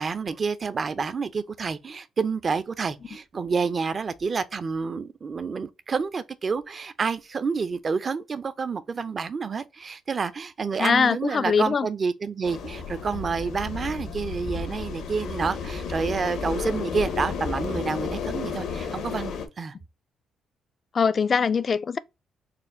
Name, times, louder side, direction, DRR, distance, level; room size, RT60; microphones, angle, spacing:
voice 1, 0.0-19.7, right 5 dB, 40° right, 0.5 m, -29 dB
voice 2, 10.8-11.9 20.9-22.0, left 6 dB, 40° left, 0.3 m, -22 dB
sound 1, 12.4-19.5, left 5 dB, 75° left, 0.8 m, -32 dB
4.2 x 2.2 x 3.7 m
cardioid pair, 90°, 0 cm